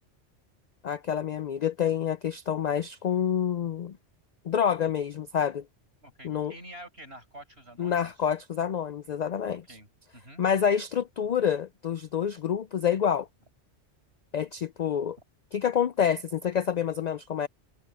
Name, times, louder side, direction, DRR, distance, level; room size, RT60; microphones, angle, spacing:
voice 1, 0.8-4.0 4.4-5.7 6.2-6.5 7.8-9.8 10.4-13.3 14.3-15.2 15.5-17.5, left 8 dB, 65° left, 0.4 m, -27 dB
voice 2, 6.0-8.1 9.5-9.9 10.1-10.4, right 1 dB, 60° right, 7.2 m, -47 dB
omnidirectional pair, 1.2 m